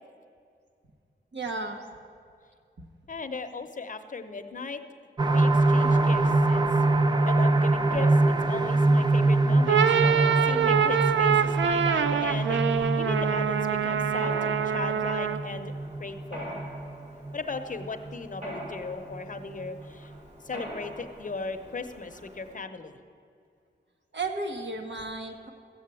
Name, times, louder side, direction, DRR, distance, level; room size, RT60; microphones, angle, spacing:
voice 1, 1.3-1.8 24.1-25.5, right 3 dB, 70° right, 3 dB, 1.4 m, -33 dB
voice 2, 3.1-4.8 5.3-6.7 7.2-15.7 16.0-16.6 17.3-20.1 20.4-22.9, left 4 dB, 45° left, 7 dB, 0.8 m, -37 dB
sound 1, 5.2-18.7 19.1-19.2 19.6-19.7, right 2 dB, 25° right, 0.5 m, -25 dB
Mechanisms, 5.8-22.6, equal, 40° right, 4.3 m, -44 dB
sound 2, 9.5-15.5, right 8 dB, 90° right, 0.5 m, -25 dB
14.5 x 7.6 x 8.2 m, 2.3 s
wide cardioid pair, 140°, 19 cm